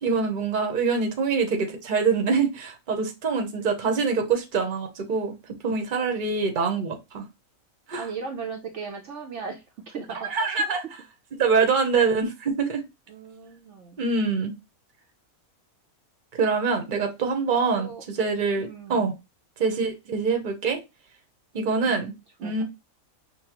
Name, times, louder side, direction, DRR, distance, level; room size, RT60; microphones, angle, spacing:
voice 1, 0.0-5.3 5.6-7.2 7.9-8.0 10.2-10.8 11.4-12.8 14.0-14.5 16.4-19.1 19.6-20.8 21.5-22.1 22.4-22.6, right 5 dB, 40° right, 0.9 m, -24 dB
voice 2, 8.0-9.6 9.9-10.5 13.1-14.0 17.8-18.0 18.6-19.1 21.8-22.6, right 5 dB, 60° right, 0.9 m, -37 dB
5.3 x 2.3 x 2.9 m
omnidirectional pair, 1.5 m